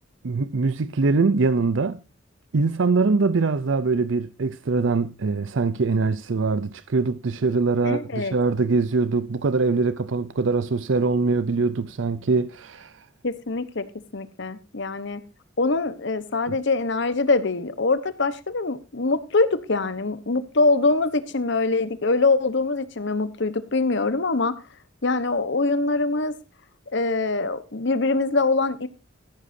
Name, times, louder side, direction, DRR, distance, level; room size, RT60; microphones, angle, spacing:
voice 1, 0.2-2.0 2.5-13.0 16.5-16.6, right 4 dB, 75° right, 0.6 m, -23 dB
voice 2, 7.8-8.4 13.2-13.9 14.1-15.2 15.6-24.5 25.0-26.3 26.9-28.9, left 3 dB, 65° left, 1.1 m, -23 dB
14.5 x 11.5 x 2.7 m
head